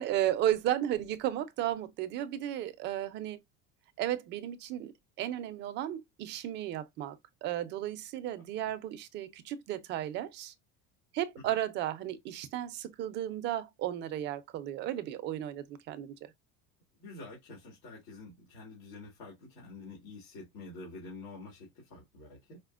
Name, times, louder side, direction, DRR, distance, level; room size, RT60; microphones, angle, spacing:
voice 1, 0.0-3.4 4.0-10.5 11.1-16.3, right 12 dB, 35° right, 0.4 m, -34 dB
voice 2, 17.0-22.6, left 3 dB, 80° left, 1.9 m, -48 dB
4.9 x 2.0 x 2.3 m
cardioid pair, 165°, 31 cm